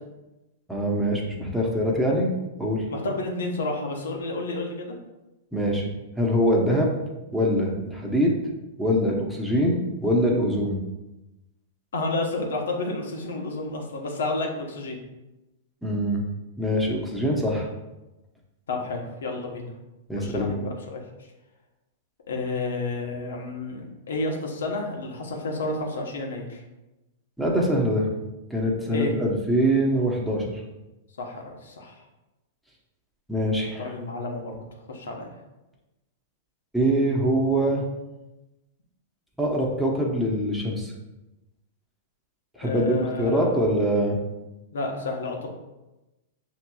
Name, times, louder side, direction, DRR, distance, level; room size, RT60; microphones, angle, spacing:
voice 1, 0.7-2.3 2.6-2.9 5.5-5.9 6.2-6.9 7.3-8.3 8.8-10.8 15.8-16.2 16.6-17.7 20.1-20.5 27.4-28.1 28.5-30.6 33.3-33.9 36.7-37.8 39.4-40.9 42.6-44.2, equal, ahead, -3 dB, 0.9 m, -23 dB
voice 2, 2.9-4.9 11.9-15.0 18.7-19.7 20.2-21.0 22.3-26.6 28.9-29.1 31.2-31.9 33.8-34.5 34.9-35.3 42.6-43.5 44.7-45.5, left 2 dB, 85° left, 1 dB, 1.0 m, -30 dB
6.2 x 3.0 x 2.3 m, 1.0 s
hypercardioid pair, 130°, 0 cm